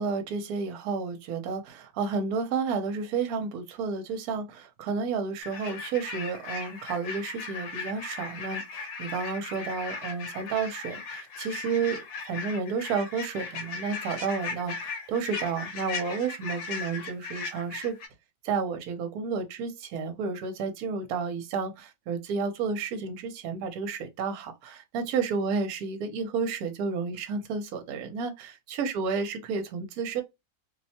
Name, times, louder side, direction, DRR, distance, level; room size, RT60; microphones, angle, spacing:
voice 1, 0.0-12.0 12.3-18.0 18.4-30.2, right 5 dB, 70° right, 1.1 m, -31 dB
sound 1, 5.4-18.1, left 4 dB, 70° left, 1.2 m, -37 dB
2.8 x 2.1 x 2.7 m
omnidirectional pair, 1.8 m